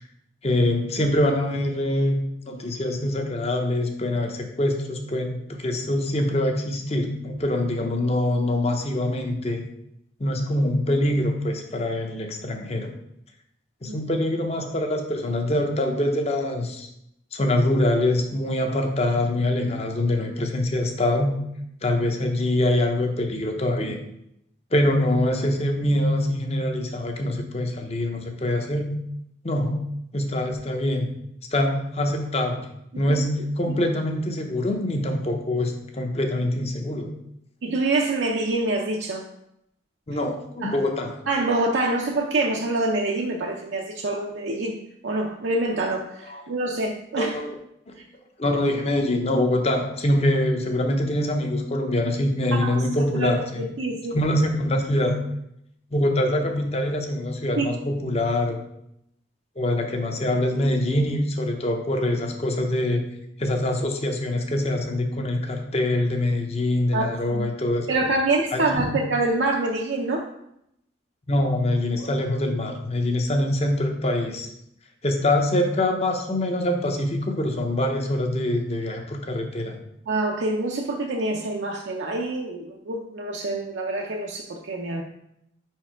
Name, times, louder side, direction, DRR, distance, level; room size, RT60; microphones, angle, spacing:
voice 1, 0.4-2.2 2.5-9.6 10.2-12.9 13.8-16.9 17.3-21.3 21.8-24.0 24.7-28.9 29.4-29.8 30.1-31.1 31.5-32.7 33.0-37.1 40.1-41.2 46.2-46.4 47.2-47.5 47.9-48.0 48.4-53.6 54.1-55.2 55.9-58.6 59.6-63.0 63.4-67.9 68.5-68.9 71.3-74.5 75.0-79.8, left 1 dB, 30° left, 4 dB, 0.7 m, -24 dB
voice 2, 37.6-39.2 40.6-40.8 41.3-44.8 45.0-47.4 48.5-48.6 52.6-54.2 57.6-57.7 66.9-67.5 67.9-70.3 72.0-72.1 80.1-85.0, right 2 dB, 70° right, 0 dB, 0.5 m, -26 dB
5.1 x 4.6 x 4.5 m, 0.78 s
head